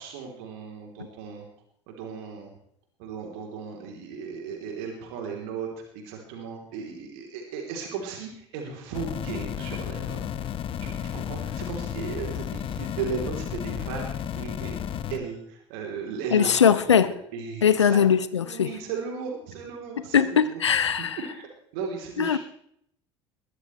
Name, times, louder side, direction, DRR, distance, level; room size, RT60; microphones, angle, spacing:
voice 1, 0.0-1.5 1.9-2.5 3.0-5.7 5.9-10.2 10.8-14.1 14.4-14.7 15.1-17.0 17.3-18.0 18.4-21.5 21.7-22.4, right 5 dB, 60° right, 1 dB, 3.2 m, -36 dB
sound 1, 8.9-15.2, left 9 dB, 35° left, 1.1 m, -33 dB
voice 2, 16.3-17.1 17.6-18.7 20.1-21.2 22.2-22.4, left 7 dB, 80° left, 14 dB, 0.8 m, -20 dB
21.5 x 13.0 x 3.2 m, 0.69 s
figure-of-eight pair, 65°, 15 cm